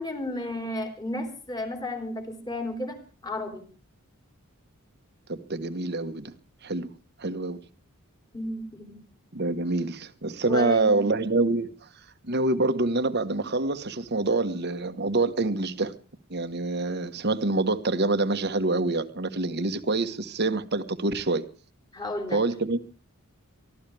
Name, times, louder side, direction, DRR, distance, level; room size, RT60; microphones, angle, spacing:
voice 1, 0.0-3.6 8.3-9.0 10.4-11.0 21.9-22.4, left 1 dB, 20° left, 5 dB, 3.3 m, -33 dB
voice 2, 5.3-6.3 6.6-6.9 7.2-7.6 9.3-11.7 12.2-15.9 16.3-21.4 22.3-22.8, right 2 dB, 50° right, 9 dB, 1.4 m, -26 dB
24.0 x 14.5 x 3.5 m, 0.38 s
head